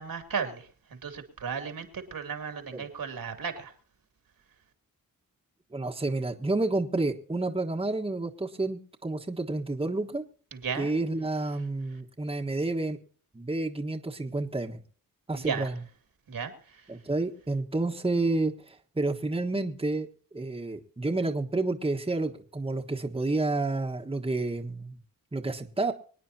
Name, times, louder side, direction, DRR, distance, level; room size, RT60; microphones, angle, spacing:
voice 1, 0.0-3.7 10.5-10.9 15.3-15.7 16.3-16.9, right 6 dB, 75° right, 8 dB, 2.6 m, -35 dB
voice 2, 5.7-10.2 10.7-13.0 13.3-14.8 15.3-15.7 16.9-20.1 20.3-25.0 25.3-25.9, right 2 dB, 15° right, 3 dB, 1.4 m, -30 dB
25.0 x 9.4 x 2.8 m, 0.43 s
cardioid pair, 70°, 35 cm